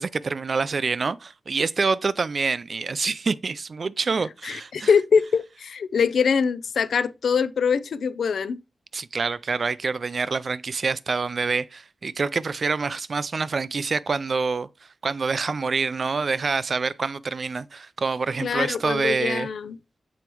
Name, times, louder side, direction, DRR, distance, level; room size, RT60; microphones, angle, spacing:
voice 1, 0.0-4.9 8.9-14.7 15.0-19.5, right 4 dB, 50° right, 0.3 m, -26 dB
voice 2, 4.4-8.6 18.4-19.8, left 6 dB, 85° left, 0.4 m, -23 dB
7.0 x 4.6 x 2.9 m
wide cardioid pair, 115°, 0 cm